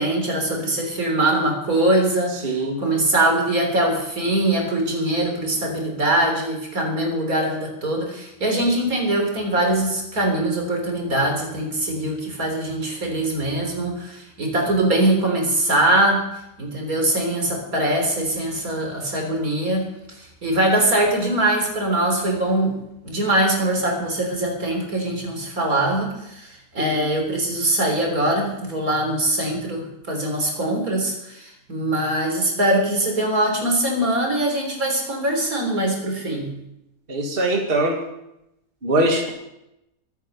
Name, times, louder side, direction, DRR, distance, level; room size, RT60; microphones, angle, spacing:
voice 1, 0.0-16.2 16.6-22.8 23.0-36.5, right 1 dB, 80° right, 2 dB, 4.2 m, -22 dB
voice 2, 2.4-2.8 26.8-27.0 37.1-38.0 38.8-39.3, right 1 dB, 40° right, 1 dB, 2.2 m, -22 dB
23.0 x 9.1 x 5.4 m, 0.85 s
omnidirectional pair, 1.5 m